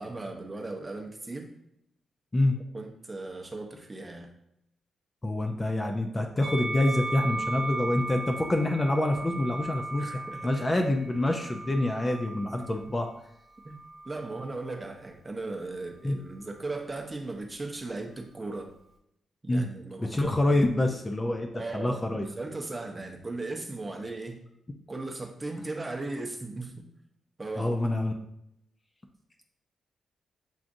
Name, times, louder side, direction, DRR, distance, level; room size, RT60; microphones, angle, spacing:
voice 1, 0.0-1.5 2.7-4.3 10.0-10.7 11.3-11.4 12.8-12.9 13.6-13.8 14.0-18.7 19.4-20.9 21.5-24.4 24.9-26.8 27.4-27.8, right 2 dB, 20° right, 2 dB, 0.7 m, -37 dB
voice 2, 5.2-10.1 10.4-13.1 16.0-16.2 19.5-19.7 20.0-22.3 27.6-28.1, left 1 dB, 20° left, 3 dB, 0.4 m, -26 dB
Musical instrument, 6.4-12.8 13.7-14.7, right 2 dB, 50° right, 0.9 m, -37 dB
7.1 x 2.5 x 2.6 m, 0.80 s
cardioid pair, 110°, 0 cm